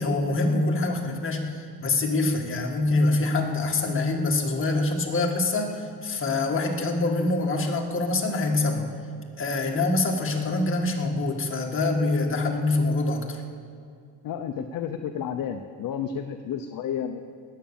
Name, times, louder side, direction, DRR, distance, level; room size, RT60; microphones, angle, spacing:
voice 1, 0.0-8.8 9.4-13.4, left 2 dB, 30° left, 1 dB, 1.9 m, -25 dB
voice 2, 14.2-17.2, left 8 dB, 50° left, 7 dB, 0.7 m, -31 dB
19.0 x 8.5 x 7.2 m, 2.3 s
cardioid pair, 145°, 43 cm